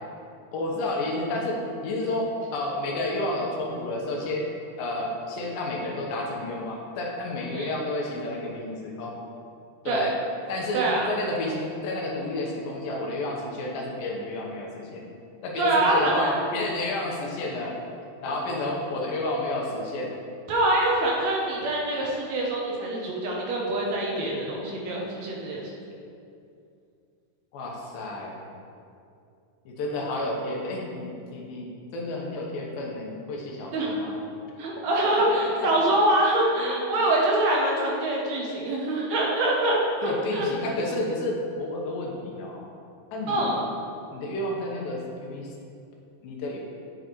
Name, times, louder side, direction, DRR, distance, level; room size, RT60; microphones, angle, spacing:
voice 1, 0.5-4.5 4.8-9.2 9.8-10.1 10.5-15.1 15.4-17.7 18.2-20.1 27.5-28.4 29.7-34.2 35.6-35.7 36.6-36.7 40.0-42.6 43.1-43.5 44.1-45.5 46.2-46.6, left 1 dB, 75° left, -1 dB, 2.7 m, -31 dB
voice 2, 10.7-11.1 15.6-16.3 20.5-25.7 33.7-34.0 34.6-40.5 43.3-43.6, right 1 dB, 80° right, -3 dB, 1.5 m, -25 dB
9.1 x 6.7 x 3.0 m, 2.5 s
omnidirectional pair, 4.2 m